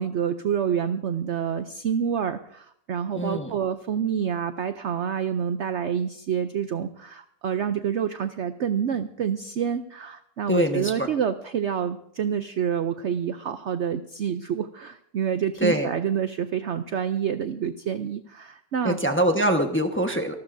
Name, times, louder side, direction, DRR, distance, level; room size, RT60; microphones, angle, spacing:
voice 1, 0.0-19.0, right 8 dB, 65° right, 10 dB, 0.7 m, -28 dB
voice 2, 3.1-3.5 10.5-11.1 15.6-15.9 18.8-20.3, right 1 dB, 10° left, 4 dB, 1.0 m, -23 dB
27.0 x 12.5 x 2.6 m, 0.67 s
omnidirectional pair, 1.9 m